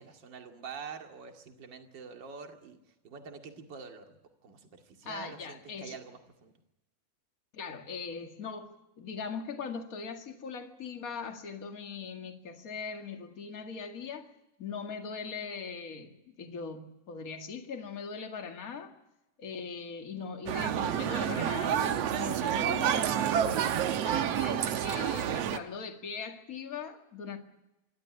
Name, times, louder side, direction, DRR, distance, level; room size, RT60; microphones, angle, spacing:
voice 1, 0.0-2.8 3.0-6.5, right 6 dB, 35° right, 2.3 m, -46 dB
voice 2, 5.0-6.0 7.5-14.3 14.6-19.0 19.4-23.5 24.0-27.4, left 5 dB, 35° left, 1.7 m, -40 dB
sound 1, 20.5-25.6, right 9 dB, 80° right, 1.4 m, -29 dB
26.5 x 12.5 x 9.8 m
omnidirectional pair, 4.3 m